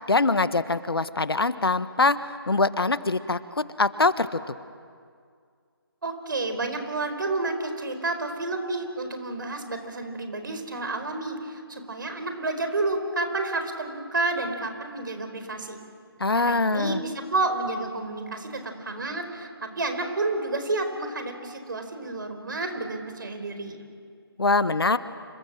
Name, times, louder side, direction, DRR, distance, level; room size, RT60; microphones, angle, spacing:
voice 1, 0.1-2.2 2.5-4.4 16.2-17.0 24.4-25.0, left 3 dB, 70° left, 13 dB, 1.3 m, -23 dB
voice 2, 6.0-15.8 16.3-23.8, right 2 dB, 55° right, 7 dB, 4.6 m, -30 dB
28.5 x 26.5 x 7.6 m, 2.2 s
figure-of-eight pair, 155°, 13 cm